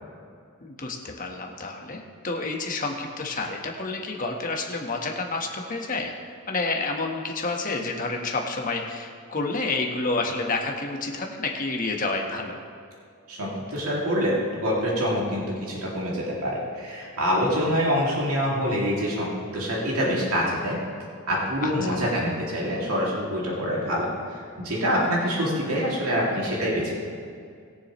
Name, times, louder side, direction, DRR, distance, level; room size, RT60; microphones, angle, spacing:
voice 1, 0.6-6.1 6.5-12.6 21.6-22.0, left 3 dB, 35° left, 1 dB, 1.3 m, -29 dB
voice 2, 13.3-14.4 14.6-20.8 21.3-24.1 24.6-27.0, equal, 85° right, -4 dB, 2.5 m, -25 dB
21.0 x 7.1 x 3.1 m, 2.3 s
head